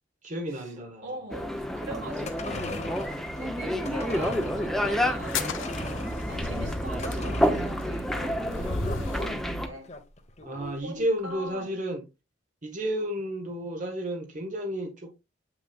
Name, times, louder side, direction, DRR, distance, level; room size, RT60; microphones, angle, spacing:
voice 1, 0.2-1.0 3.6-3.9 10.4-12.0 12.6-15.2, right 1 dB, 40° right, 1.2 m, -32 dB
voice 2, 1.0-9.9 10.4-11.8, right 2 dB, 80° right, 2.7 m, -42 dB
sound 1, 1.3-9.7, equal, ahead, 0.7 m, -29 dB
sound 2, 2.0-10.7 11.0-11.1, left 2 dB, 35° left, 1.2 m, -40 dB
sound 3, 5.2-9.4, left 4 dB, 85° left, 0.9 m, -36 dB
8.2 x 5.9 x 2.4 m
head